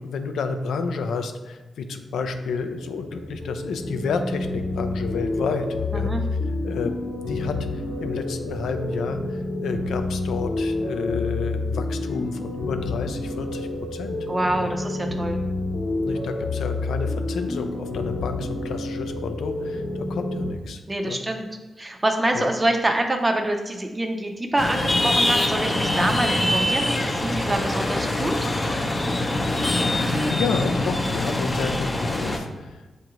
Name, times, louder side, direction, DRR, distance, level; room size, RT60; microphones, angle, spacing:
voice 1, 0.0-6.3 6.6-6.9 7.3-14.3 14.6-14.7 16.0-21.2 22.3-22.5 30.3-32.9, left 5 dB, 90° left, 7 dB, 0.3 m, -30 dB
sound 1, 2.1-20.5, left 2 dB, 65° left, 0.7 m, -29 dB
voice 2, 14.3-15.4 20.9-21.5 21.8-28.4, right 1 dB, 20° right, 3 dB, 0.5 m, -25 dB
sound 2, 24.6-32.4, left 1 dB, 30° left, 0.5 m, -24 dB
6.5 x 2.4 x 3.0 m, 1.2 s
cardioid pair, 65°, 0 cm